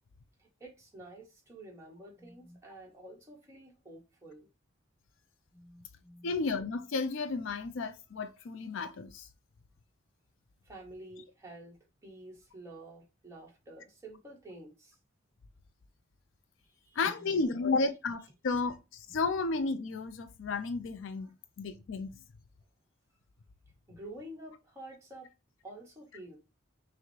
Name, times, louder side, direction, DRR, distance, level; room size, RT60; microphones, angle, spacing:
voice 1, 0.4-4.5 5.5-6.3 10.6-15.0 16.7-17.4 21.2-21.3 23.9-25.3 25.6-26.4, right 1 dB, 15° right, 1.2 m, -50 dB
voice 2, 6.2-9.2 17.0-18.8 19.1-21.3 21.6-22.1, left 3 dB, 75° left, 0.4 m, -32 dB
5.7 x 2.1 x 3.1 m
head